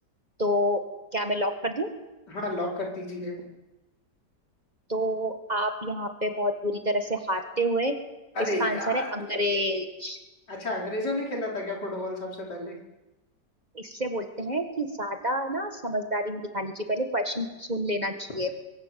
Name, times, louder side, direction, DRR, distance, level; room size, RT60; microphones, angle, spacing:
voice 1, 0.4-0.8 1.1-1.9 4.9-7.9 8.4-10.2 13.7-18.5, equal, 25° right, 5 dB, 1.8 m, -28 dB
voice 2, 2.3-3.4 8.4-9.1 10.5-12.8, left 1 dB, 80° left, -2 dB, 5.2 m, -31 dB
23.0 x 18.5 x 7.0 m, 1.0 s
omnidirectional pair, 1.8 m